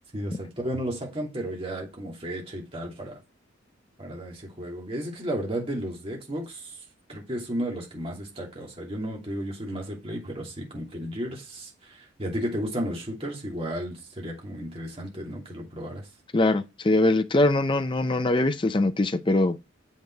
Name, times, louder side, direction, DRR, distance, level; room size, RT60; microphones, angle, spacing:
voice 1, 0.1-3.2 4.0-6.7 7.1-16.1, equal, 30° right, 2.9 m, -33 dB
voice 2, 16.3-19.6, left 2 dB, 25° left, 0.5 m, -22 dB
7.6 x 5.3 x 4.7 m
head